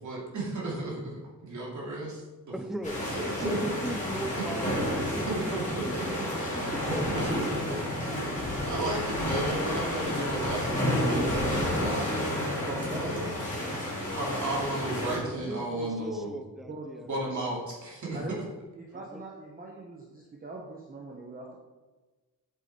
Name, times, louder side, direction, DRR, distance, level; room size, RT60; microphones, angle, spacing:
voice 1, 0.0-2.5 3.1-3.6 4.6-4.7 5.3-6.1 6.3-12.0 13.0-13.5 14.1-16.4 17.1-18.2, right 2 dB, 50° right, -3 dB, 2.6 m, -34 dB
voice 2, 2.5-5.9 6.7-8.2 13.8-14.4 15.1-17.5 19.1-19.2, right 1 dB, ahead, 7 dB, 0.5 m, -39 dB
sound 1, 2.8-15.2, equal, 20° left, 3.1 m, -31 dB
sound 2, 6.5-13.3, left 2 dB, 40° left, 2.6 m, -40 dB
voice 3, 11.8-12.1 12.7-13.1 16.7-16.9 18.1-18.4 18.7-21.6, right 2 dB, 25° right, -1 dB, 0.9 m, -40 dB
8.0 x 7.7 x 4.2 m, 1.2 s
wide cardioid pair, 180°, 37 cm